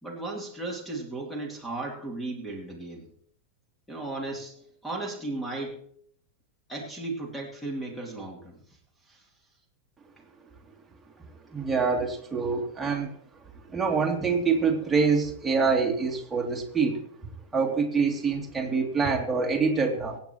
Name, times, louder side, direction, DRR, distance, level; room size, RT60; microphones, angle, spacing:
voice 1, 0.0-3.1 3.9-5.8 6.7-8.6 9.1-9.3, right 2 dB, 5° left, -1 dB, 2.9 m, -35 dB
voice 2, 11.5-13.1 13.7-17.0 17.5-20.2, right 5 dB, 10° right, 0 dB, 2.7 m, -25 dB
24.5 x 8.8 x 3.1 m, 0.65 s
figure-of-eight pair, 90°, 0 cm